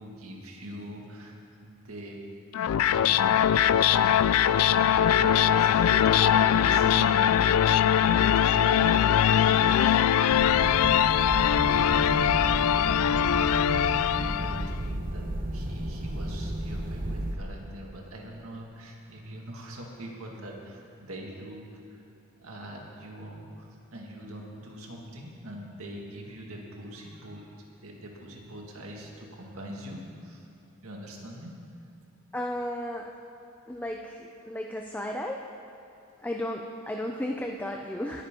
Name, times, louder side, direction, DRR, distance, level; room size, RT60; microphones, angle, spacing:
voice 1, 0.0-2.2 2.9-3.4 5.1-10.1 10.4-11.0 11.5-15.3 15.5-22.0 22.4-27.5 27.8-30.5 30.8-31.5, equal, 75° right, -1 dB, 2.1 m, -43 dB
sound 1, 2.5-14.8, left 9 dB, 80° left, 0.3 m, -22 dB
sound 2, 10.3-17.4, right 1 dB, 40° right, 1.0 m, -32 dB
voice 2, 32.3-33.2 33.7-35.4 36.2-38.2, left 1 dB, 10° left, 2 dB, 0.5 m, -34 dB
20.5 x 9.6 x 3.8 m, 2.8 s
head